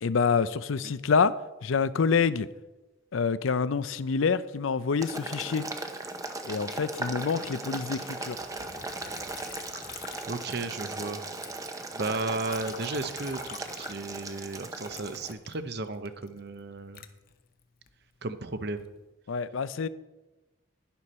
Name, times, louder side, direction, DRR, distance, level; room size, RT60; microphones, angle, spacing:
voice 1, 0.0-2.5 3.1-5.6 6.4-8.4 19.3-19.9, left 5 dB, 75° left, 0.5 m, -27 dB
Boiling, 5.0-15.3, right 2 dB, 15° right, 0.7 m, -38 dB
Liquid, 8.4-11.0 11.3-14.5 14.9-17.9 18.5-19.0, left 7 dB, 45° left, 0.8 m, -47 dB
voice 2, 10.3-11.2 11.9-17.0 18.2-18.9, right 3 dB, 50° right, 0.8 m, -34 dB
11.5 x 11.0 x 4.3 m
head